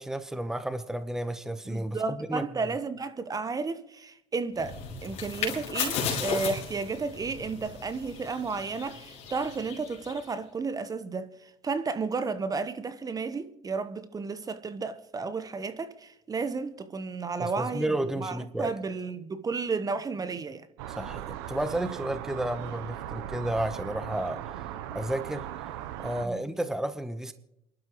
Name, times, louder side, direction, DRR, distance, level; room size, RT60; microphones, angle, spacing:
voice 1, 0.0-2.4 17.4-18.7 20.9-24.4 24.9-25.5 26.0-27.3, right 1 dB, 5° right, 1.0 m, -32 dB
voice 2, 1.7-20.7 26.2-26.6, right 4 dB, 30° right, 1.0 m, -33 dB
sound 1, 4.6-10.3, left 6 dB, 60° left, 4.3 m, -35 dB
sound 2, 20.8-26.3, right 12 dB, 80° right, 0.8 m, -38 dB
28.5 x 11.5 x 3.1 m
hypercardioid pair, 70°, 13 cm